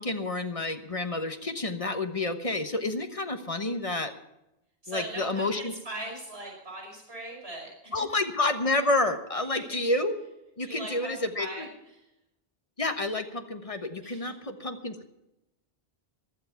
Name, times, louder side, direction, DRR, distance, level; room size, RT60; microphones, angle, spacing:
voice 1, 0.0-4.1 4.9-5.7 7.9-10.1 10.6-11.7 12.8-15.1, left 2 dB, 35° left, 8 dB, 1.3 m, -29 dB
voice 2, 4.8-8.0 9.5-9.9 10.6-11.7 11.9-12.1 14.0-14.3, right 1 dB, 80° right, 0 dB, 5.9 m, -40 dB
15.5 x 11.5 x 5.8 m, 0.90 s
omnidirectional pair, 1.0 m